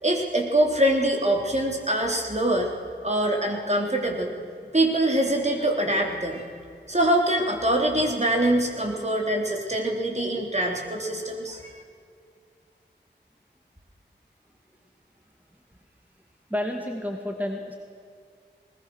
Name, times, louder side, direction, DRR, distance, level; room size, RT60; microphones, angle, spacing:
voice 1, 0.0-2.7 3.0-4.3 4.7-6.4 6.9-11.6, right 1 dB, 35° right, 1 dB, 3.8 m, -24 dB
voice 2, 16.5-17.8, left 1 dB, 10° right, 2 dB, 2.3 m, -30 dB
20.5 x 20.0 x 6.5 m, 2.4 s
wide cardioid pair, 40°, 19 cm